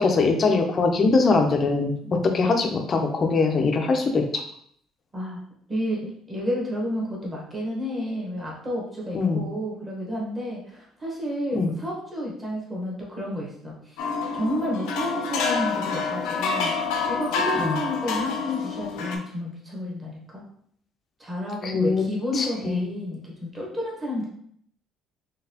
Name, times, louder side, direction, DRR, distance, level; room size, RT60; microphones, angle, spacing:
voice 1, 0.0-1.9 2.3-4.4 9.1-9.4 11.6-11.7 17.6-17.7 21.6-22.0 22.3-22.8, left 4 dB, 25° left, 4 dB, 0.5 m, -22 dB
voice 2, 5.7-14.0 14.3-16.7 17.0-20.4 21.2-24.3, equal, 15° right, -3 dB, 1.0 m, -31 dB
sound 1, 14.0-19.2, left 5 dB, 90° left, 0.6 m, -27 dB
3.9 x 3.3 x 2.8 m, 0.65 s
cardioid pair, 175°, 0 cm